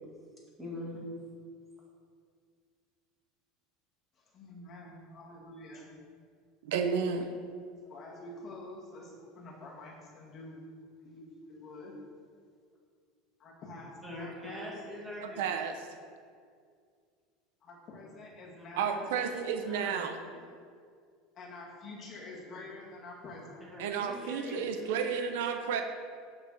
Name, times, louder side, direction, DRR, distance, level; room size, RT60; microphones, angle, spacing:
voice 1, 0.6-1.0 14.0-15.6 18.6-20.3 23.6-25.8, left 1 dB, 5° right, -5 dB, 2.0 m, -43 dB
voice 2, 4.2-5.9 7.8-10.6 11.0-12.0 13.4-14.7 17.6-19.0 21.3-23.6, left 2 dB, 25° left, -4 dB, 2.1 m, -47 dB
voice 3, 6.6-7.3 15.4-15.8 18.8-20.2 23.8-25.8, right 7 dB, 80° right, 6 dB, 0.7 m, -32 dB
7.0 x 6.8 x 6.4 m, 2.2 s
cardioid pair, 175°, 0 cm